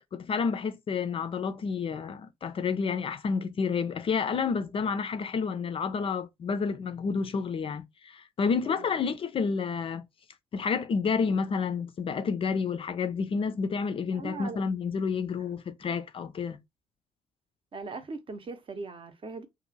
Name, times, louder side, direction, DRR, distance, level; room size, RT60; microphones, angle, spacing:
voice 1, 0.0-10.0 10.5-16.6, left 5 dB, 35° left, 0.4 m, -30 dB
voice 2, 8.7-9.0 14.1-14.6 17.7-19.5, right 4 dB, 35° right, 0.7 m, -39 dB
2.6 x 2.5 x 2.6 m
figure-of-eight pair, 45°, 16 cm